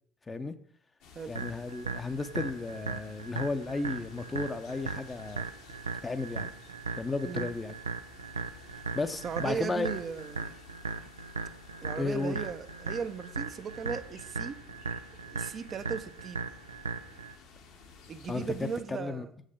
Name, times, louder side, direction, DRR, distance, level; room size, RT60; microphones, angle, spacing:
sound 1, 1.0-18.8, left 5 dB, 65° left, 1.3 m, -54 dB
voice 1, 1.3-5.5 6.0-6.5 7.0-7.7 8.7-9.9 12.0-12.4 18.3-19.3, left 3 dB, 25° left, 9 dB, 0.7 m, -34 dB
sound 2, 1.4-17.3, right 4 dB, 90° right, 0.3 m, -38 dB
voice 2, 9.2-10.6 11.8-14.6 15.3-16.5 18.1-19.3, right 6 dB, 40° right, 8 dB, 0.6 m, -37 dB
7.4 x 6.5 x 5.0 m, 0.63 s
hypercardioid pair, 60°, 0 cm